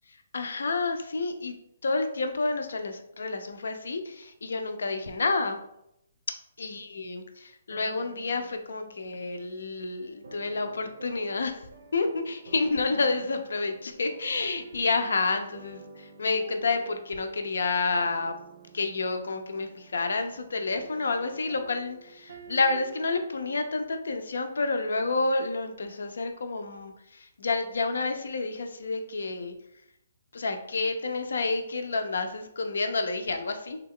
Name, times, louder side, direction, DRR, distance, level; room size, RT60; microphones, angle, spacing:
voice 1, 0.3-1.5 1.8-5.6 6.6-11.6 11.9-18.3 18.7-29.5 30.3-33.8, left 3 dB, 80° left, 7 dB, 0.5 m, -29 dB
sound 1, 7.7-23.6, right 5 dB, 75° right, 0.6 m, -49 dB
3.5 x 2.3 x 3.6 m, 0.80 s
hypercardioid pair, 150°, 0 cm